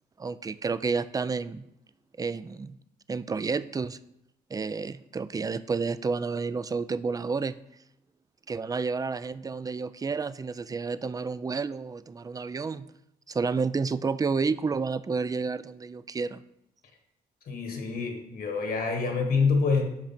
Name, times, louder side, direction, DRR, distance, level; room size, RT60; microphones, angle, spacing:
voice 1, 0.2-1.7 2.2-2.8 3.1-4.0 4.5-7.5 8.5-12.9 13.3-16.4, right 4 dB, 20° right, 15 dB, 0.4 m, -30 dB
voice 2, 17.5-19.9, left 4 dB, 65° left, 4 dB, 1.7 m, -26 dB
6.0 x 5.0 x 5.8 m, 0.82 s
cardioid pair, 65°, 17 cm